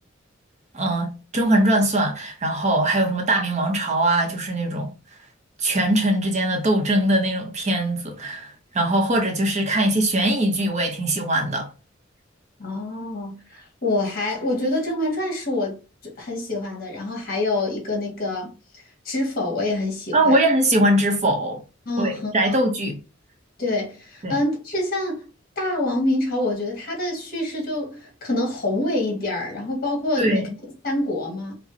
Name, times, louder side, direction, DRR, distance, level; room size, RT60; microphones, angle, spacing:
voice 1, 0.7-4.9 5.6-11.7 20.1-21.6 22.0-23.0 24.2-24.4 30.2-30.5, right 1 dB, 35° right, 0.8 m, -21 dB
voice 2, 12.6-15.7 16.2-18.5 19.0-20.4 21.8-22.6 23.6-25.3 25.6-30.5 30.8-31.5, left 2 dB, 50° left, 1.7 m, -26 dB
4.9 x 2.1 x 2.7 m
head